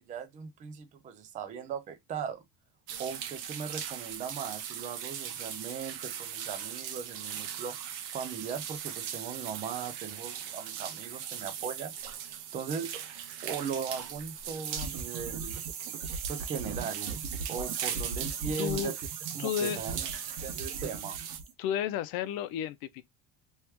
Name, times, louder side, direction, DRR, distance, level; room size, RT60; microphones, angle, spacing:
voice 1, 0.0-2.4 3.0-7.8 8.1-11.9 12.5-13.0 13.4-15.6 16.3-19.0 19.3-20.1 20.4-21.2, right 6 dB, 20° right, 0.4 m, -38 dB
sound 1, 2.9-21.4, right 9 dB, 80° right, 1.0 m, -39 dB
sound 2, 14.6-21.5, right 5 dB, 65° right, 1.3 m, -39 dB
voice 2, 18.6-18.9 19.4-19.8 21.6-23.0, left 10 dB, 60° left, 0.7 m, -32 dB
3.2 x 3.1 x 3.3 m
cardioid pair, 170°, 40 cm